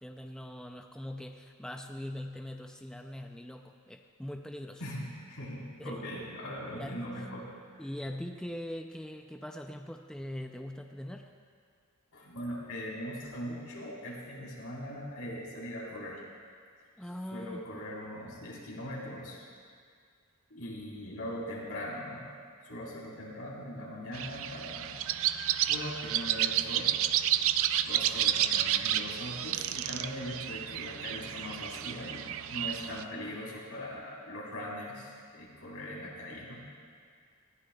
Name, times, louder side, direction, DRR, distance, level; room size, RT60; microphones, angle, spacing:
voice 1, 0.0-4.8 5.8-6.1 6.4-7.1 7.8-11.3 17.0-17.7, left 1 dB, 5° left, 4 dB, 0.4 m, -42 dB
voice 2, 4.8-7.5 12.1-16.2 17.3-19.4 20.5-22.2 22.6-24.9 25.7-26.9 27.8-36.6, equal, 85° left, -5 dB, 4.1 m, -40 dB
sound 1, 24.1-33.0, right 11 dB, 65° right, 0.4 m, -31 dB
19.0 x 16.0 x 2.3 m, 2.1 s
head